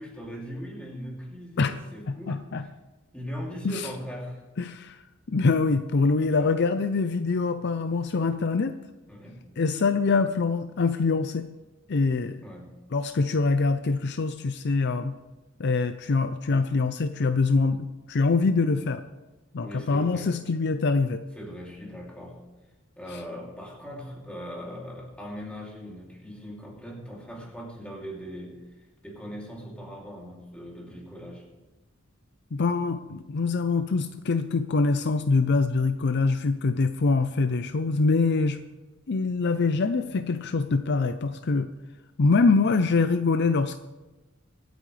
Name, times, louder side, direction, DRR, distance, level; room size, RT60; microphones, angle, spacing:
voice 1, 0.0-2.7 3.1-4.4 6.4-6.5 9.1-9.5 12.4-12.8 19.6-20.4 21.3-22.4 23.0-31.5, equal, 5° left, -3 dB, 2.9 m, -40 dB
voice 2, 2.1-2.6 3.6-3.9 4.6-5.0 5.3-8.8 9.6-11.5 11.9-12.4 12.9-15.2 15.6-19.0 19.5-21.2 32.5-38.6 39.1-41.7 42.2-43.8, left 4 dB, 55° left, 10 dB, 0.5 m, -24 dB
24.0 x 9.2 x 3.3 m, 1.1 s
head